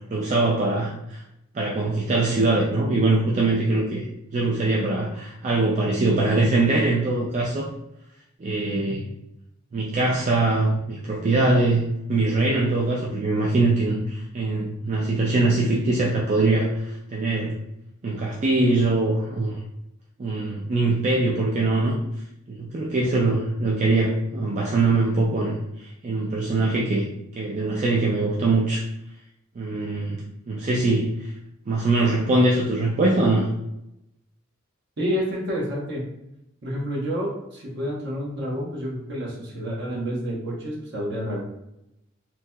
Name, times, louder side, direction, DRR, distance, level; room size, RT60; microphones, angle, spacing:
voice 1, 0.1-1.2 1.5-4.1 4.3-7.7 8.4-9.1 9.7-17.5 18.0-19.6 20.2-22.0 22.5-27.1 27.3-28.8 29.6-30.2 30.5-31.3 31.7-33.5, right 2 dB, 35° right, -3 dB, 0.4 m, -22 dB
voice 2, 35.0-36.1 36.6-41.4, equal, 60° right, -3 dB, 0.9 m, -29 dB
2.9 x 2.7 x 2.2 m, 0.85 s
head